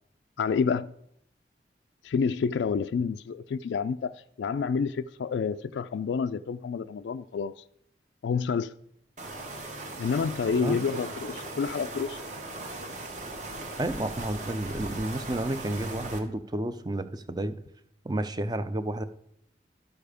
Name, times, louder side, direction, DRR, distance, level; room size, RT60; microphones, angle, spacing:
voice 1, 0.4-0.9 2.0-7.6 8.2-8.7 10.0-12.2, left 5 dB, 80° left, 0.3 m, -29 dB
sound 1, 9.2-16.2, right 2 dB, 40° right, 1.4 m, -38 dB
voice 2, 13.8-17.5 18.0-19.0, right 1 dB, 20° right, 0.5 m, -31 dB
12.0 x 6.8 x 5.0 m
head